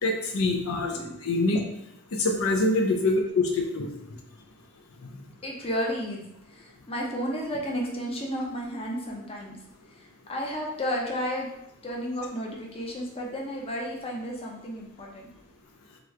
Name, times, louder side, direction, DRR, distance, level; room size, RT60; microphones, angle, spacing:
voice 1, 0.0-1.6 2.1-3.9 5.0-5.1, left 2 dB, 75° left, 2 dB, 0.6 m, -25 dB
voice 2, 5.4-6.2 6.5-9.6 9.9-11.5 11.8-15.3, equal, 30° left, -2 dB, 0.7 m, -32 dB
3.6 x 3.1 x 3.2 m, 0.82 s
head